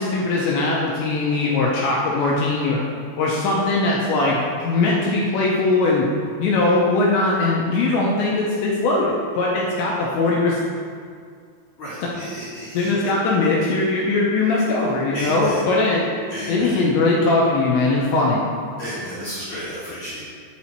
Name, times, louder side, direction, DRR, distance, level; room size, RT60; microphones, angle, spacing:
voice 1, 0.0-2.8 3.2-6.1 6.4-10.6 12.7-16.0 16.5-18.4, left 3 dB, 80° left, -4 dB, 2.7 m, -20 dB
voice 2, 11.8-12.9 15.1-15.6 16.3-16.8 18.8-20.2, equal, 55° left, -12 dB, 2.4 m, -32 dB
10.5 x 4.3 x 4.5 m, 2.1 s
omnidirectional pair, 5.8 m